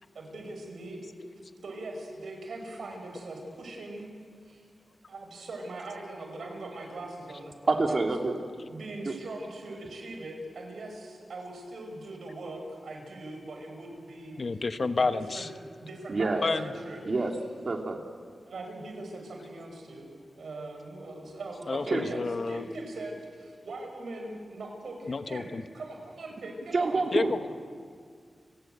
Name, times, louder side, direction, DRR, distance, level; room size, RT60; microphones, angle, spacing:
voice 1, 0.1-1.0 1.6-4.1 4.4-4.6 5.1-7.5 8.7-14.4 14.8-17.0 18.5-20.1 20.4-25.5 25.7-27.4, right 2 dB, 85° right, 3 dB, 5.8 m, -41 dB
voice 2, 7.7-8.3 9.0-9.1 16.1-16.4 17.1-17.3 17.6-18.0 21.9-22.1 26.7-27.3, right 3 dB, 50° right, 3 dB, 2.9 m, -27 dB
voice 3, 14.4-15.5 16.4-16.7 21.7-22.6 25.1-25.6 27.1-27.5, left 3 dB, 55° left, 11 dB, 1.0 m, -29 dB
29.5 x 18.5 x 8.0 m, 2.1 s
wide cardioid pair, 80°, 0 cm